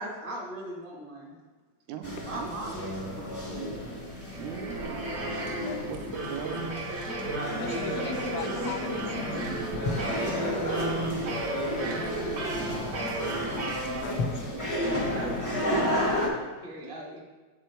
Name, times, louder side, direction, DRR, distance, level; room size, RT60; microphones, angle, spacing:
voice 1, 0.0-1.4 2.2-3.9 10.1-10.6 15.0-17.2, right 1 dB, 20° right, -3 dB, 0.8 m, -39 dB
voice 2, 1.9-2.7 4.4-5.5 5.8-6.0 6.3-6.8 11.8-12.2 12.6-12.9 15.6-15.7, right 9 dB, 75° right, 8 dB, 1.8 m, -41 dB
sound 1, 2.0-16.3, equal, 20° left, 0.5 m, -32 dB
sound 2, 4.1-14.5, right 2 dB, 50° right, 1.4 m, -35 dB
voice 3, 7.6-9.8 11.3-11.5 14.0-14.4, left 11 dB, 80° left, 6 dB, 1.6 m, -42 dB
sound 3, 8.9-14.3, left 3 dB, 60° left, 1.3 m, -39 dB
7.8 x 6.2 x 4.4 m, 1.3 s
omnidirectional pair, 3.6 m